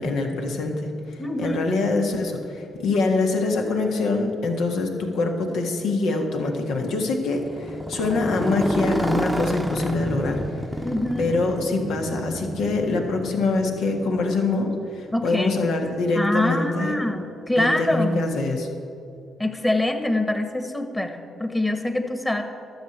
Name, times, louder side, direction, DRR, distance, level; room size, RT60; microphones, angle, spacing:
voice 1, 0.0-10.4 11.2-16.9 17.6-18.7, left 3 dB, 75° left, 2 dB, 1.6 m, -24 dB
voice 2, 1.2-1.6 10.8-11.3 15.1-15.6 16.1-18.2 19.4-22.4, left 1 dB, 15° left, 6 dB, 1.6 m, -25 dB
Motorcycle, 7.4-15.4, right 1 dB, 10° right, 0.8 m, -30 dB
12.0 x 6.5 x 8.1 m, 2.6 s
supercardioid pair, 60°, 0 cm